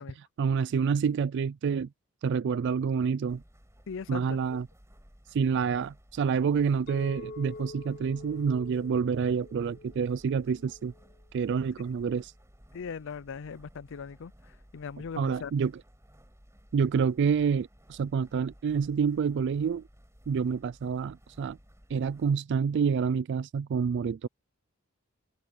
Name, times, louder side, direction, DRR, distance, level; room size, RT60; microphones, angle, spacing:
voice 1, 0.0-1.9 2.2-3.4 4.1-4.7 5.3-10.9 11.3-12.3 15.2-15.7 16.7-19.8 20.3-21.6 21.9-24.3, right 6 dB, 55° right, 0.3 m, -28 dB
sound 1, 3.3-22.4, equal, 15° right, 6.7 m, -57 dB
voice 2, 3.9-4.6 12.7-15.5, left 6 dB, 60° left, 0.5 m, -40 dB
Chink clink, 6.9-11.1, left 3 dB, 45° left, 3.1 m, -46 dB
head